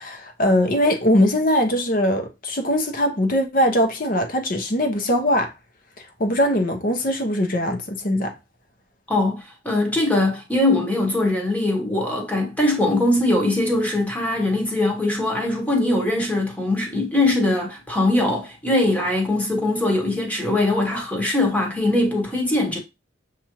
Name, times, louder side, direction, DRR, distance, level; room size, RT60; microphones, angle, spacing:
voice 1, 0.0-5.5 6.2-8.3, left 1 dB, 45° left, 0.8 m, -21 dB
voice 2, 9.1-22.8, left 2 dB, 10° left, 1.0 m, -21 dB
6.9 x 2.5 x 2.9 m
head